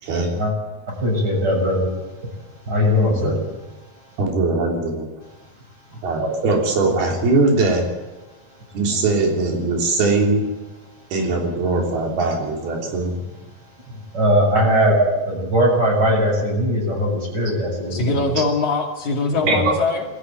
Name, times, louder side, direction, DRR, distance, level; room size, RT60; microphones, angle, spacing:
voice 1, 0.0-0.3 3.2-3.4 4.2-5.1 6.0-7.9 8.7-10.5 11.1-13.2 14.9-15.1 15.4-15.5 19.5-19.6, right 3 dB, 85° right, 2 dB, 5.4 m, -20 dB
voice 2, 1.0-1.9 2.7-3.4 13.9-15.0 15.5-18.3 19.4-19.7, equal, 25° right, 0 dB, 7.4 m, -19 dB
voice 3, 17.9-20.1, left 3 dB, 55° left, 2 dB, 3.5 m, -22 dB
20.5 x 14.5 x 9.3 m, 1.1 s
omnidirectional pair, 4.3 m